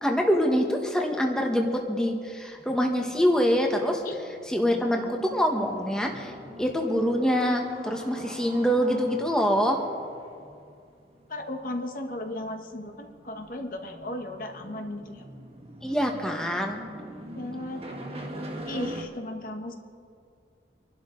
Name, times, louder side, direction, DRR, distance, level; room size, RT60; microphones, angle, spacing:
voice 1, 0.0-4.0 4.5-6.3 6.6-9.8 15.8-16.8, equal, 5° left, 2 dB, 1.2 m, -25 dB
sound 1, 2.6-19.0, right 1 dB, 35° right, 1.8 m, -43 dB
voice 2, 11.3-15.3 17.3-17.8 18.7-19.7, left 1 dB, 50° left, 4 dB, 1.2 m, -35 dB
25.5 x 12.0 x 3.8 m, 2.3 s
head